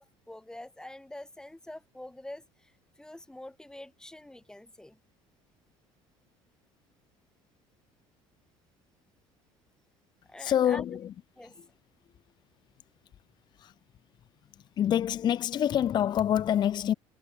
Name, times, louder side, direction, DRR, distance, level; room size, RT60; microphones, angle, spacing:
voice 1, 0.0-2.4 3.0-5.0 10.3-11.0 11.4-11.5, left 1 dB, 5° left, 3.3 m, -45 dB
voice 2, 10.4-11.1 11.4-11.7 13.6-13.7 14.8-16.9, left 10 dB, 40° left, 0.6 m, -26 dB
cardioid pair, 125°, 11 cm